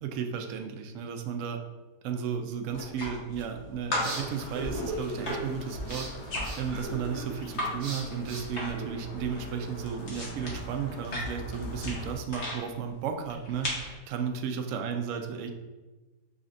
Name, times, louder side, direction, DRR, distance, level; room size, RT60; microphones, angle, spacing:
voice 1, 0.0-1.6 2.0-13.7 14.1-15.5, right 7 dB, 70° right, 5 dB, 0.7 m, -34 dB
sound 1, 2.7-3.6 3.9-7.7 8.0-8.9 9.2-12.6 13.2-13.9, left 1 dB, 45° left, 1.3 m, -36 dB
sound 2, 3.5-9.4, right 2 dB, 90° right, 1.7 m, -39 dB
sound 3, 4.1-12.2, left 1 dB, 70° left, 1.5 m, -43 dB
5.0 x 4.2 x 2.5 m, 1.2 s
omnidirectional pair, 1.8 m